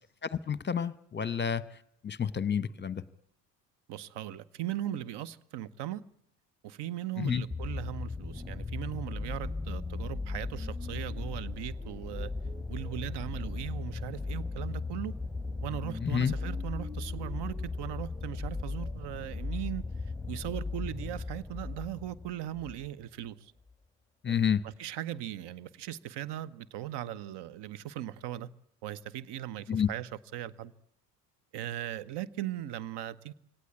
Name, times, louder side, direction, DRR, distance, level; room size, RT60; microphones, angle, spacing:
voice 1, 0.3-1.6 2.0-3.0 7.2-7.4 16.0-16.3 24.2-24.6 29.7-29.9, left 8 dB, 20° left, 1.0 m, -29 dB
voice 2, 3.9-6.0 6.6-12.3 12.7-15.1 15.6-19.8 20.3-23.5 24.3-28.5 28.8-30.7 31.5-33.3, right 12 dB, 55° right, 1.1 m, -39 dB
sound 1, 7.5-22.9 23.7-23.8, left 3 dB, ahead, 1.5 m, -37 dB
24.0 x 18.0 x 9.7 m
hypercardioid pair, 55°, 50 cm